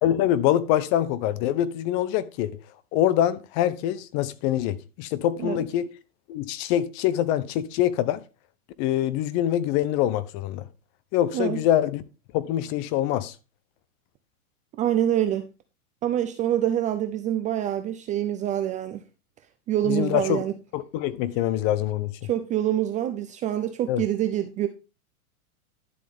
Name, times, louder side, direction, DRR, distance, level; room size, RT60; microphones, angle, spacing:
voice 1, 0.0-2.5 2.9-5.9 6.3-8.2 8.8-10.6 11.1-12.0 12.3-13.3 19.9-20.4 20.7-22.1 23.9-24.0, left 12 dB, 40° left, 0.9 m, -24 dB
voice 2, 14.8-15.5 16.0-19.0 19.7-20.5 22.3-24.7, right 11 dB, 15° right, 0.4 m, -26 dB
11.5 x 7.6 x 3.6 m
hypercardioid pair, 130°, 45 cm